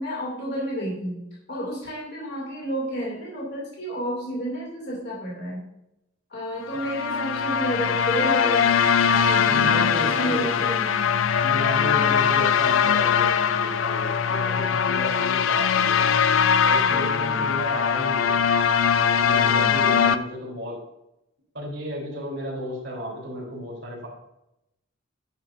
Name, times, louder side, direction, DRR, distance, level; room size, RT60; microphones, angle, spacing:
voice 1, 0.0-5.7 6.3-11.2 11.9-12.3 16.9-17.5 19.3-20.0, equal, 55° left, -4 dB, 2.5 m, -31 dB
sound 1, 6.6-20.2, left 7 dB, 85° left, 0.5 m, -21 dB
voice 2, 9.5-10.7 11.4-16.1 16.6-18.4 18.9-20.8 21.5-24.1, equal, 60° right, -3 dB, 3.3 m, -33 dB
10.5 x 7.6 x 2.6 m, 0.86 s
head